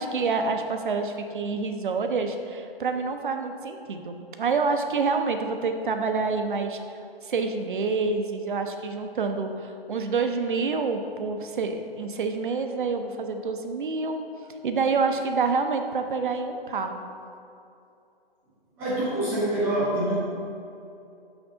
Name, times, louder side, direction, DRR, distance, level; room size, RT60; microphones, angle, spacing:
voice 1, 0.0-6.8 7.2-14.2 14.6-17.0, right 4 dB, 55° right, 6 dB, 0.7 m, -27 dB
voice 2, 18.8-20.1, right 1 dB, 10° right, -9 dB, 0.6 m, -25 dB
6.2 x 6.1 x 3.8 m, 2.7 s
hypercardioid pair, 155°, 30 cm